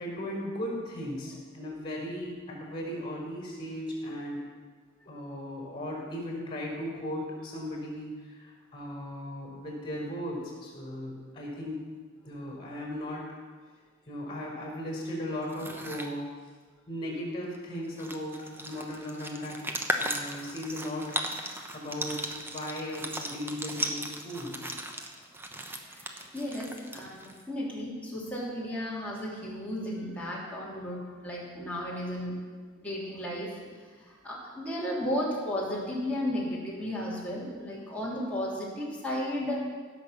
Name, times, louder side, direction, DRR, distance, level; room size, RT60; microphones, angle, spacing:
voice 1, 0.0-4.4 5.0-11.8 12.2-13.2 14.1-16.2 16.9-19.6 20.0-21.1 21.7-24.6 33.6-33.7, left 1 dB, 25° left, -1 dB, 4.7 m, -37 dB
sound 1, 15.4-16.1 17.5-17.6 17.9-27.4, right 1 dB, 10° right, 1.0 m, -36 dB
voice 2, 25.8-32.3 32.8-33.6 34.0-39.6, left 1 dB, 5° left, -6 dB, 3.0 m, -34 dB
16.5 x 6.1 x 7.2 m, 1.5 s
head